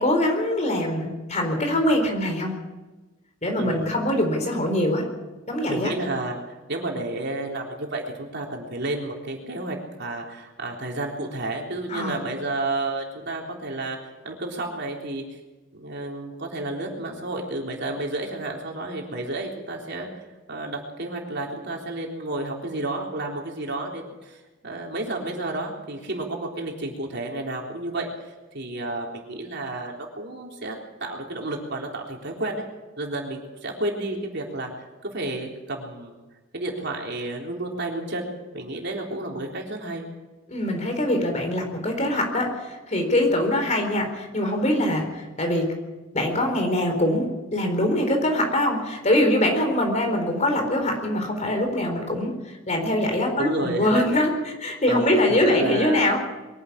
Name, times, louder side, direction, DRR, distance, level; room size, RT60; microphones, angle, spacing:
voice 1, 0.0-2.5 3.4-5.0 5.5-5.9 11.9-12.2 40.5-45.7 46.1-56.2, left 1 dB, 35° left, 4 dB, 4.2 m, -23 dB
voice 2, 3.6-4.0 5.7-6.4 6.7-14.0 14.2-15.4 15.7-20.1 20.5-28.1 28.5-32.6 33.0-36.2 36.5-40.1 53.4-54.0 54.9-56.1, right 2 dB, 55° right, 0 dB, 3.8 m, -31 dB
23.0 x 11.5 x 9.9 m, 1.2 s
head